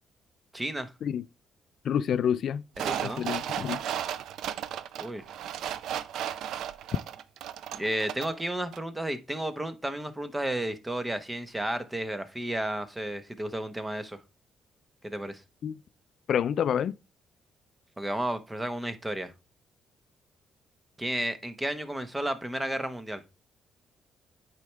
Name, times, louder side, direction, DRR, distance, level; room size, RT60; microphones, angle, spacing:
voice 1, 0.5-0.9 2.8-3.2 5.0-5.2 7.7-14.2 15.0-15.4 18.0-19.3 21.0-23.2, right 1 dB, 15° right, 0.9 m, -32 dB
voice 2, 1.9-2.6 3.2-3.8 15.6-15.8 16.3-16.9, left 8 dB, 65° left, 0.3 m, -27 dB
sound 1, 2.8-8.4 8.7-8.8, right 10 dB, 80° right, 0.4 m, -34 dB
8.3 x 4.7 x 3.2 m
cardioid pair, 90°, 0 cm